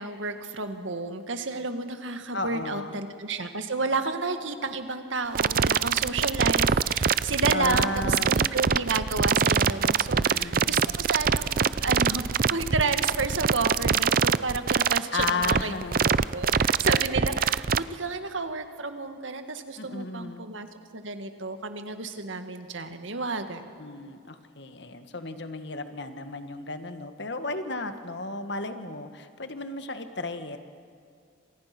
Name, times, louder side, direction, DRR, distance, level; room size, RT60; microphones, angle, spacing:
voice 1, 0.0-15.7 16.0-20.7 20.9-23.7, right 3 dB, 85° right, 8 dB, 2.0 m, -31 dB
voice 2, 2.3-3.0 7.5-8.4 10.1-11.0 15.1-16.1 19.8-20.5 23.8-30.6, left 3 dB, 65° left, 9 dB, 1.7 m, -34 dB
sound 1, 5.3-17.8, right 6 dB, 45° right, 0.5 m, -23 dB
28.0 x 26.5 x 6.1 m, 2.4 s
head